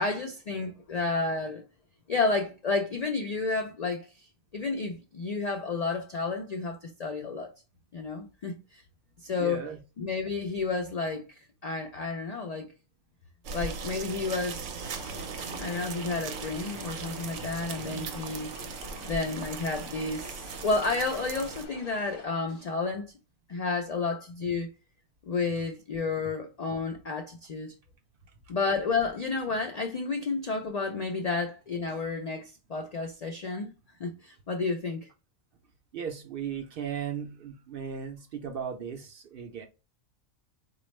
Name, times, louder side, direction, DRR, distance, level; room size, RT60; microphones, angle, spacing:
voice 1, 0.0-1.6 2.1-4.3 4.5-7.5 7.9-8.8 9.2-9.6 10.0-12.7 13.5-15.2 15.6-18.5 19.0-23.1 23.5-24.7 25.2-27.7 28.5-33.7 34.0-35.1, left 3 dB, 70° left, 0.3 m, -31 dB
voice 2, 9.4-9.8 35.9-39.7, right 7 dB, 60° right, 0.6 m, -36 dB
sound 1, 13.4-21.7, right 5 dB, 85° right, 0.9 m, -38 dB
sound 2, 14.8-22.3, left 4 dB, 50° left, 0.9 m, -48 dB
4.1 x 2.3 x 3.1 m
omnidirectional pair, 1.2 m